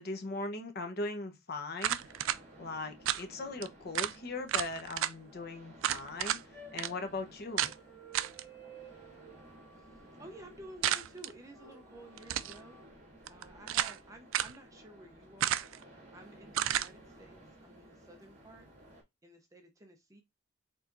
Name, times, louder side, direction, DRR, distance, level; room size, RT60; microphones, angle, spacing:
voice 1, 0.0-2.1 2.6-7.7, left 2 dB, 50° left, 1.0 m, -39 dB
sound 1, 1.8-2.4 3.0-3.2 3.6-3.7 3.9-4.1 4.5-5.1 5.8-6.4 6.8-6.9 7.6-7.7 8.1-8.4 10.8-11.3 12.2-12.6 13.3-14.0 14.3-14.6 15.4-15.8 16.5-16.9, right 11 dB, 75° right, 0.4 m, -32 dB
sound 2, 2.0-19.0, right 1 dB, 35° right, 2.2 m, -56 dB
sound 3, 6.5-10.9 11.5-12.9, right 4 dB, 5° left, 2.1 m, -55 dB
voice 2, 9.7-12.8 13.3-15.8 16.1-18.7 19.2-20.2, right 1 dB, 15° right, 0.7 m, -53 dB
4.6 x 4.0 x 2.6 m
head